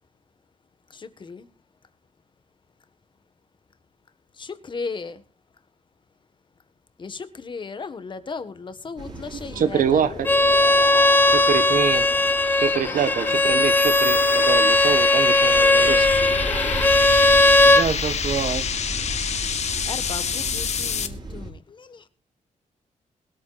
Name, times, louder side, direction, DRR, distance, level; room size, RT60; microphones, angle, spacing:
voice 1, 0.9-1.5 4.4-5.2 7.0-10.1 12.8-13.0 13.3-13.6 15.7-16.4 19.9-22.1, left 4 dB, 35° left, 1.5 m, -37 dB
sound 1, 9.0-21.5, right 1 dB, 30° right, 4.5 m, -36 dB
sound 2, 9.1-21.1, left 7 dB, 55° left, 1.4 m, -30 dB
voice 2, 9.5-10.3 11.3-12.1 12.6-16.1 17.1-17.2, right 8 dB, 90° right, 1.2 m, -25 dB
Bowed string instrument, 10.2-17.9, left 2 dB, 15° left, 0.6 m, -18 dB
voice 3, 17.6-18.7, right 6 dB, 55° right, 1.5 m, -27 dB
21.0 x 13.5 x 2.5 m
wide cardioid pair, 165°, 14 cm